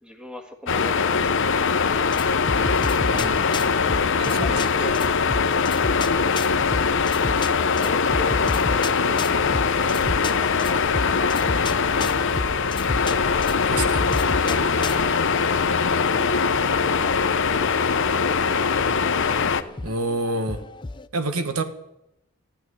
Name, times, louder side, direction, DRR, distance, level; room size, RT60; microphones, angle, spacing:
voice 1, 0.0-2.0, left 1 dB, 5° right, 5 dB, 1.6 m, -41 dB
sound 1, 0.7-19.6, left 5 dB, 60° left, 0.8 m, -22 dB
sound 2, 2.0-21.1, left 3 dB, 20° left, 0.5 m, -33 dB
voice 2, 3.1-3.4 4.1-4.6 13.6-14.1 19.8-20.6 21.1-21.6, right 2 dB, 80° right, 8 dB, 1.5 m, -28 dB
13.5 x 10.5 x 9.8 m, 0.88 s
head